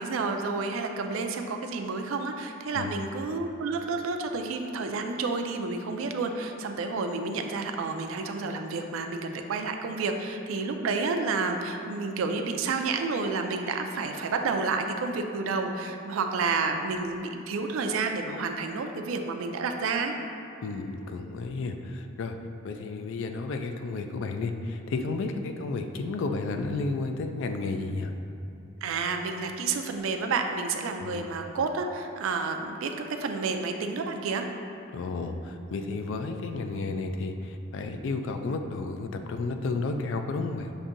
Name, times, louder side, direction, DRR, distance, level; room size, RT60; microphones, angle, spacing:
voice 1, 0.0-20.1 28.8-34.4, right 4 dB, 75° right, 5 dB, 0.4 m, -30 dB
voice 2, 20.6-22.4 22.6-28.1 31.0-31.2 34.9-40.7, left 3 dB, 65° left, 6 dB, 0.3 m, -32 dB
7.0 x 2.6 x 2.5 m, 2.8 s
head